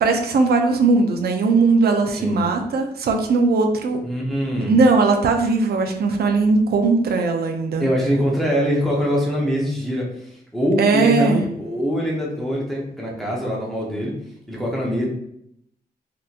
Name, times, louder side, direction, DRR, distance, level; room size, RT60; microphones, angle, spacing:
voice 1, 0.0-4.0 4.6-7.9 10.8-11.4, right 3 dB, 70° right, 4 dB, 0.5 m, -18 dB
voice 2, 4.0-4.7 7.8-14.1 14.5-15.1, equal, ahead, -4 dB, 0.8 m, -23 dB
3.4 x 2.9 x 2.5 m, 0.73 s
cardioid pair, 100°, 17 cm